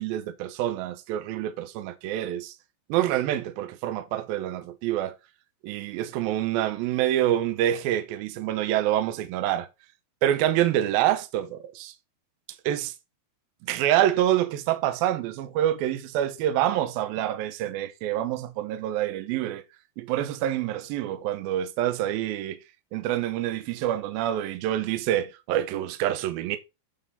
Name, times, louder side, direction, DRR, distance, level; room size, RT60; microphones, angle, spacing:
voice 1, 0.0-2.5 2.9-5.1 5.6-9.7 10.2-11.9 12.7-12.9 13.6-19.6 20.0-22.6 22.9-26.6, right 12 dB, 80° right, 2.2 m, -26 dB
11.0 x 4.1 x 3.7 m
omnidirectional pair, 5.2 m